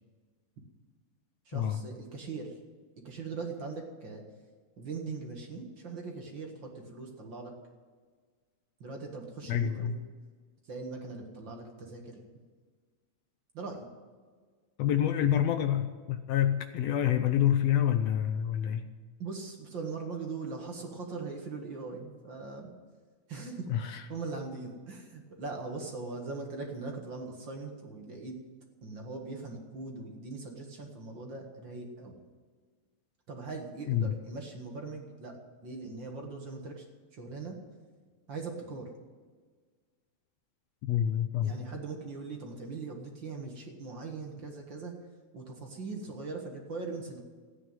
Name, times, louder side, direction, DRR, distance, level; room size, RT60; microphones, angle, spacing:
voice 1, 1.5-2.5 3.0-4.2 4.8-7.5 8.8-9.9 10.7-12.2 13.5-13.9 19.2-22.7 23.3-28.4 28.8-32.2 33.3-36.9 37.1-37.6 38.3-38.9 41.4-44.9 45.3-47.2, right 4 dB, 45° right, 1 dB, 2.1 m, -40 dB
voice 2, 9.5-10.0 14.8-18.8 23.7-24.0 33.9-34.1 40.8-41.6, left 10 dB, 75° left, 8 dB, 1.7 m, -27 dB
15.5 x 9.4 x 9.0 m, 1.5 s
omnidirectional pair, 3.3 m